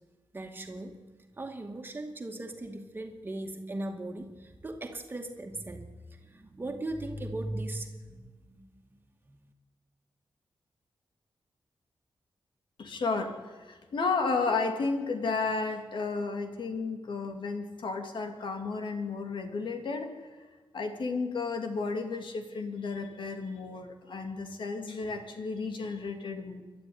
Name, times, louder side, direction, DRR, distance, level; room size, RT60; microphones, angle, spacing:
voice 1, 0.3-1.0 1.4-8.6 9.3-9.4, right 1 dB, 20° right, 3 dB, 2.3 m, -38 dB
voice 2, 12.8-20.1 20.7-26.6, left 4 dB, 65° left, 5 dB, 2.8 m, -33 dB
28.5 x 12.5 x 9.6 m, 1.4 s
wide cardioid pair, 175°, 9 cm